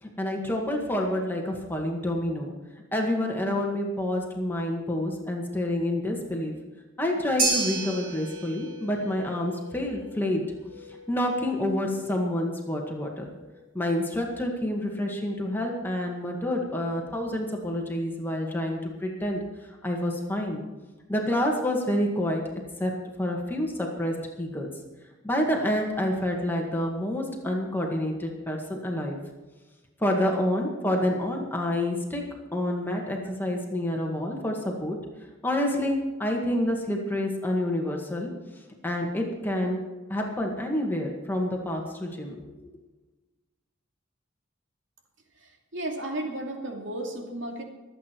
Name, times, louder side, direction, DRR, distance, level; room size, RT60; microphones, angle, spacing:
voice 1, 0.0-2.5 2.9-6.5 7.0-10.4 11.1-13.2 13.7-19.4 19.8-20.6 21.1-22.4 22.8-22.9 23.2-24.7 25.2-29.2 30.0-32.2 32.5-35.0 35.4-38.3 38.8-39.8 40.1-42.5, left 1 dB, 10° left, 0 dB, 1.9 m, -28 dB
sound 1, 7.4-15.8, right 3 dB, 45° right, 5.4 m, -35 dB
voice 2, 45.4-47.6, right 1 dB, 70° right, 1 dB, 2.7 m, -34 dB
24.5 x 8.7 x 4.7 m, 1.2 s
head